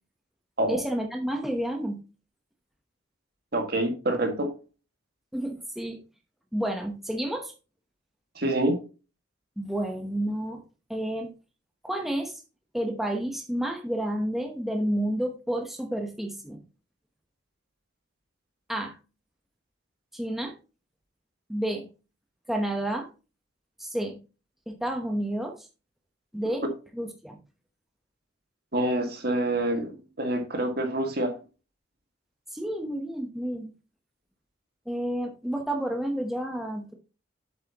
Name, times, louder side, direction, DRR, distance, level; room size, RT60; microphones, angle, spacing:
voice 1, 0.7-2.0 5.3-6.0 6.5-7.5 9.6-10.6 10.9-11.3 11.8-12.4 12.7-16.6 18.7-19.0 20.1-20.5 21.5-21.9 22.5-23.1 23.8-24.2 24.7-25.7 26.3-26.6 26.9-27.4 32.5-33.7 34.9-36.9, right 1 dB, ahead, 1.0 m, -30 dB
voice 2, 3.5-4.5 8.4-8.8 28.7-31.3, right 1 dB, 55° right, 1.9 m, -26 dB
8.0 x 7.7 x 3.0 m
head